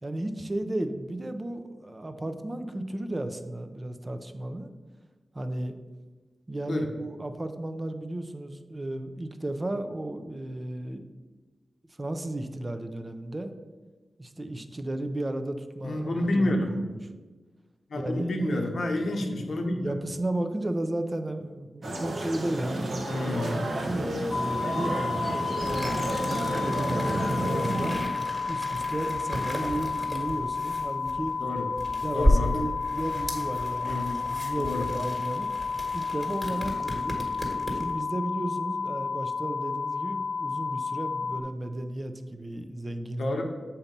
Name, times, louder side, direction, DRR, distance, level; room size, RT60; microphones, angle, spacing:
voice 1, 0.0-4.7 5.3-5.8 6.5-11.0 12.0-13.5 14.2-17.0 17.9-18.7 19.2-22.9 23.5-28.0 28.5-31.3 32.0-35.5 35.9-37.3 37.7-43.4, right 1 dB, 30° right, 8 dB, 0.5 m, -34 dB
voice 2, 15.8-16.7 17.9-19.8 23.1-23.6 31.4-31.7 32.1-32.6 33.8-34.2 34.6-34.9 43.2-43.4, left 1 dB, 80° left, 2 dB, 0.8 m, -29 dB
sound 1, 21.8-28.0, right 1 dB, 70° right, 0.8 m, -31 dB
sound 2, 24.3-41.4, left 5 dB, 45° left, 0.5 m, -31 dB
sound 3, 25.6-38.0, equal, 15° right, 1.5 m, -33 dB
7.1 x 2.8 x 5.2 m, 1.3 s
cardioid pair, 55°, 0 cm